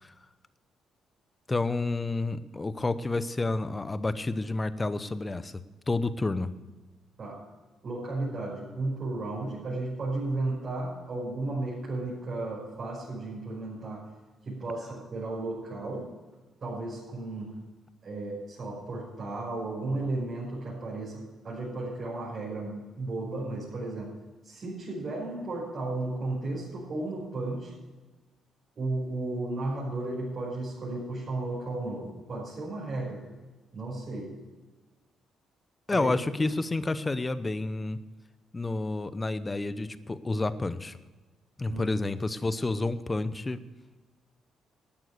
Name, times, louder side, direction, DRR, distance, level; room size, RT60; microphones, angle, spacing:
voice 1, 1.5-5.5 5.9-6.5 35.9-38.0 38.5-41.0 41.6-43.6, left 2 dB, 20° left, 14 dB, 0.8 m, -29 dB
voice 2, 7.8-14.1 14.4-16.1 16.6-17.5 18.0-24.1 24.4-27.7 28.8-33.2 33.7-34.3 35.9-36.1 41.7-41.8, right 2 dB, 45° right, -6 dB, 5.5 m, -34 dB
13.0 x 9.1 x 6.6 m, 1.3 s
cardioid pair, 90°, 0 cm